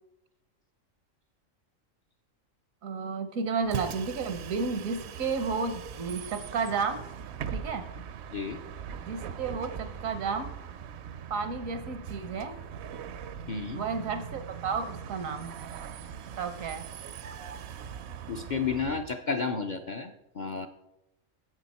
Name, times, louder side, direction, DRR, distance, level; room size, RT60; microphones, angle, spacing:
voice 1, 2.8-7.0 7.5-7.8 9.0-10.5 11.3-12.6 13.7-15.5 16.4-16.9, right 5 dB, 85° right, 10 dB, 1.3 m, -32 dB
Bus, 3.6-19.0, right 8 dB, 65° right, 0.8 m, -41 dB
voice 2, 13.5-13.8 18.3-20.7, left 5 dB, 55° left, 5 dB, 0.5 m, -32 dB
9.8 x 7.7 x 4.1 m, 0.93 s
omnidirectional pair, 1.4 m